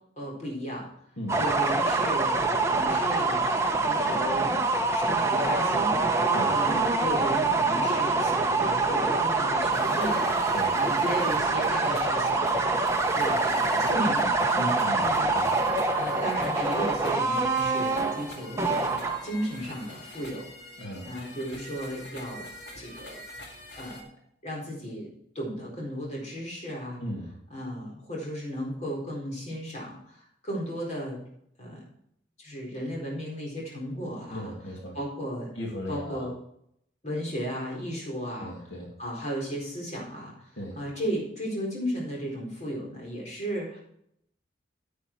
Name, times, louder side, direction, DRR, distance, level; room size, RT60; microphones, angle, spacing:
voice 1, 0.2-0.9 1.4-4.5 4.9-6.0 6.2-12.6 13.1-14.3 15.0-15.3 15.9-20.5 21.0-22.5 22.7-23.2 23.8-24.1 24.4-25.1 25.3-27.0 27.5-30.2 30.4-31.2 31.6-31.8 32.4-34.5 34.9-35.5 35.9-36.3 37.0-38.5 39.0-43.8, equal, 40° left, -2 dB, 4.1 m, -35 dB
sound 1, 1.3-19.4, right 3 dB, 15° right, 0.9 m, -25 dB
sound 2, 9.7-24.0, left 1 dB, 65° left, 1.9 m, -45 dB
voice 2, 14.6-15.1 15.3-15.5 20.8-21.1 27.0-27.3 34.3-35.0 35.6-36.3 38.4-38.9 40.6-40.8, equal, 85° left, -1 dB, 2.4 m, -36 dB
9.5 x 8.5 x 4.5 m, 0.73 s
head